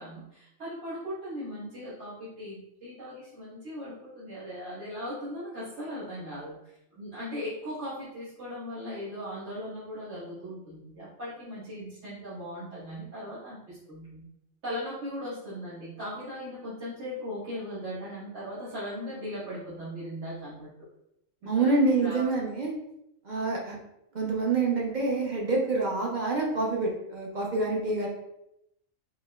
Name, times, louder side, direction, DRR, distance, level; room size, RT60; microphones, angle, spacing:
voice 1, 0.0-6.6 6.9-14.2 14.6-20.7 21.6-21.7 22.0-22.4, equal, 60° right, -13 dB, 1.6 m, -38 dB
voice 2, 21.5-22.7 23.3-23.7 24.1-28.1, right 3 dB, 45° right, -2 dB, 0.7 m, -27 dB
4.3 x 3.0 x 2.2 m, 0.81 s
omnidirectional pair, 1.3 m